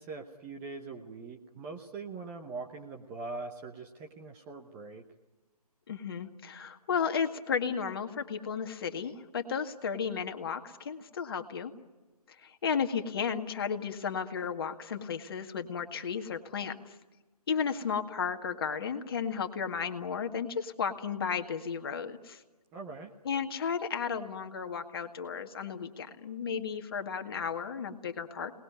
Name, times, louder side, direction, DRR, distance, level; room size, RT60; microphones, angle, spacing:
voice 1, 0.0-5.0 22.7-23.1, right 3 dB, 10° right, 2 dB, 0.9 m, -42 dB
voice 2, 5.9-11.7 12.4-16.9 17.5-22.4 23.3-28.5, left 6 dB, 35° left, 6 dB, 1.9 m, -34 dB
28.0 x 20.0 x 9.5 m, 1.2 s
figure-of-eight pair, 150°, 20 cm